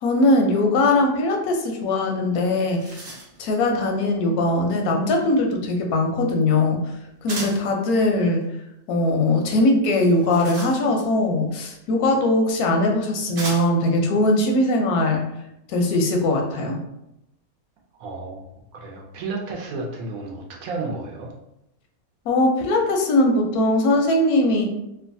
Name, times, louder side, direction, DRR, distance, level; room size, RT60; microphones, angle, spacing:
voice 1, 0.0-3.0 3.4-6.9 7.2-8.4 8.9-15.3 15.7-16.8 22.3-24.6, left 2 dB, 85° left, 2 dB, 1.1 m, -20 dB
sound 1, 2.1-2.2 2.5-3.5 7.3-7.7 10.0-11.2 12.3-12.4 13.4-13.9, right 2 dB, 50° right, 0.9 m, -36 dB
voice 2, 18.0-18.4 18.7-21.3, right 3 dB, 75° right, 0 dB, 1.1 m, -32 dB
3.0 x 2.2 x 2.6 m, 0.84 s
omnidirectional pair, 1.5 m